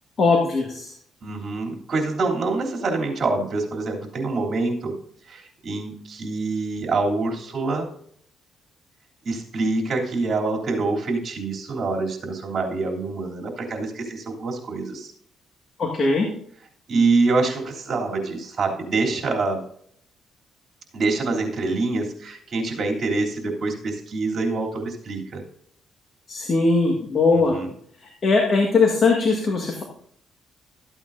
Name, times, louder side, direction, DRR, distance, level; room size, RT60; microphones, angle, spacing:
voice 1, 0.2-0.9 15.8-16.3 26.3-27.6 28.2-29.8, left 3 dB, 45° left, 1 dB, 1.8 m, -20 dB
voice 2, 1.2-4.9 5.3-7.9 9.2-15.1 16.9-19.6 20.9-25.4 27.3-27.7, right 3 dB, 45° right, 0 dB, 3.2 m, -25 dB
13.5 x 8.7 x 2.7 m, 0.64 s
cardioid pair, 90°, 0 cm